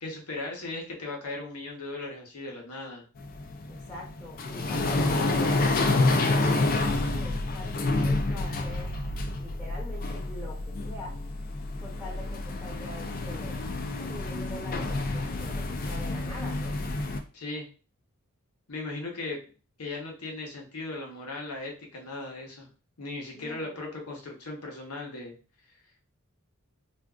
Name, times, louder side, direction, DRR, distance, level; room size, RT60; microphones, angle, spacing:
voice 1, 0.0-3.0 17.3-17.7 18.7-19.4 19.8-22.7 23.0-25.3, left 2 dB, 85° left, 0 dB, 0.9 m, -37 dB
sound 1, 3.2-17.2, left 2 dB, 40° left, 0.3 m, -28 dB
voice 2, 3.7-5.6 6.3-8.9 9.4-11.2 11.8-13.6 14.0-16.8 23.3-23.9, equal, 10° left, -6 dB, 0.7 m, -43 dB
3.5 x 2.5 x 2.4 m, 0.37 s
head